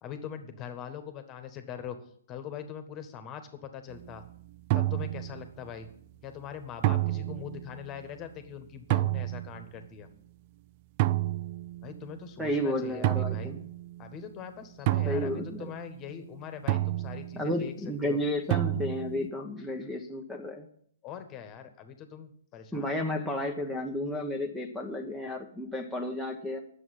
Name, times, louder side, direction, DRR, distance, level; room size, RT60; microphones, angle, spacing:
voice 1, 0.0-2.0 2.3-4.2 4.7-5.9 6.2-10.1 11.8-13.5 14.0-17.7 18.0-18.2 21.0-23.1, left 8 dB, 25° left, 8 dB, 1.5 m, -42 dB
sound 1, 3.9-4.2 4.7-5.6 6.8-7.8 8.9-9.7 11.0-12.2 13.0-14.2 14.9-16.1 16.7-17.6 18.5-19.3, right 16 dB, 40° right, 0.4 m, -30 dB
voice 2, 12.4-13.6 15.0-15.7 17.4-20.7 22.7-26.6, left 1 dB, 5° right, 3 dB, 1.0 m, -32 dB
9.4 x 7.4 x 8.9 m, 0.63 s
figure-of-eight pair, 125°, 0 cm